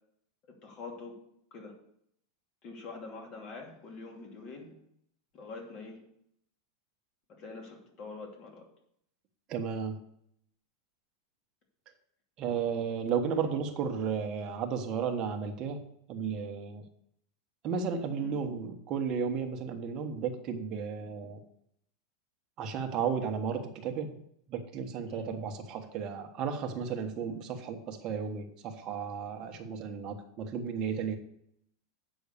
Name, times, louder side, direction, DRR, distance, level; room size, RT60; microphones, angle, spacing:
voice 1, 0.5-1.2 1.5-1.7 2.6-4.7 5.3-6.0 7.4-8.6 18.2-18.3 25.1-25.3, left 3 dB, 35° left, 1 dB, 2.8 m, -45 dB
voice 2, 9.5-10.0 12.4-15.8 16.1-16.8 17.6-21.4 22.6-24.2 24.5-31.2, right 6 dB, 35° right, 5 dB, 1.3 m, -34 dB
8.4 x 6.3 x 6.7 m, 0.71 s
supercardioid pair, 150°, 2 cm